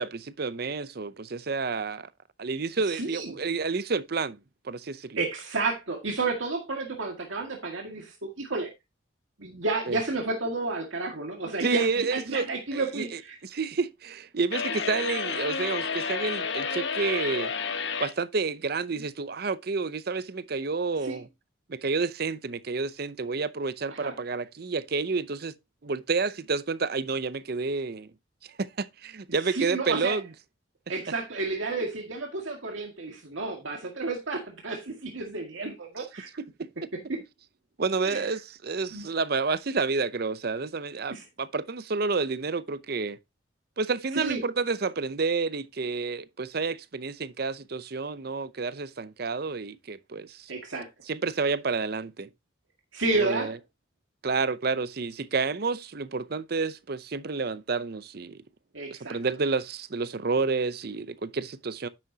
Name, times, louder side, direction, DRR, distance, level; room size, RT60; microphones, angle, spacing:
voice 1, 0.0-2.1 2.4-4.4 4.6-5.2 9.9-10.0 11.6-17.5 18.0-21.3 21.7-25.5 25.8-28.1 28.6-30.2 36.6-36.7 37.8-43.2 43.8-50.5 51.1-52.3 53.1-53.6 54.2-58.4 58.9-61.9, right 4 dB, 50° right, 0.6 m, -30 dB
voice 2, 2.9-3.4 5.2-8.7 9.4-13.4 21.0-21.2 23.9-24.1 29.5-30.2 30.9-36.3 37.1-37.2 38.0-38.3 38.9-39.1 41.1-41.2 44.1-44.4 50.5-50.9 52.9-53.5 58.7-59.2, right 3 dB, 75° right, 2.0 m, -31 dB
sound 1, 14.5-18.1, left 5 dB, 65° left, 1.2 m, -30 dB
10.0 x 7.5 x 2.8 m
head